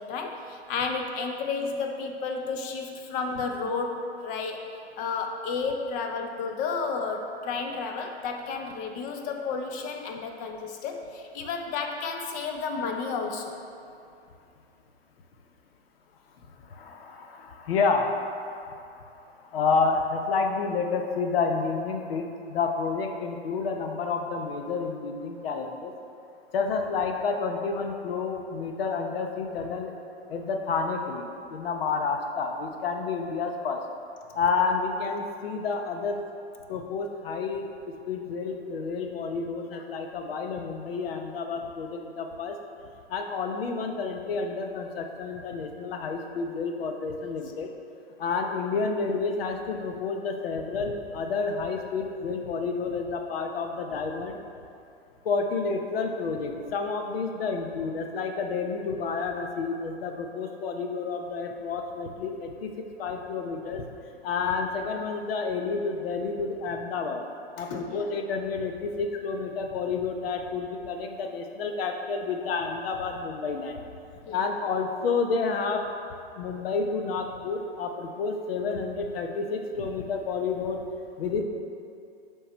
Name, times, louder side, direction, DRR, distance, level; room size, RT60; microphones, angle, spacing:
voice 1, 0.0-4.7 5.0-13.5 67.6-68.1 74.2-74.4, left 4 dB, 25° left, 4 dB, 0.5 m, -32 dB
voice 2, 16.7-19.0 19.5-25.9 26.5-30.0 30.3-31.2 31.5-33.8 34.3-36.2 36.7-37.7 38.1-42.6 43.1-47.7 48.2-54.4 55.2-63.8 64.2-67.2 67.6-73.8 74.3-75.8 76.4-80.8 81.2-81.4, left 4 dB, 65° left, 4 dB, 0.8 m, -30 dB
5.4 x 3.8 x 5.4 m, 2.6 s
hypercardioid pair, 130°, 32 cm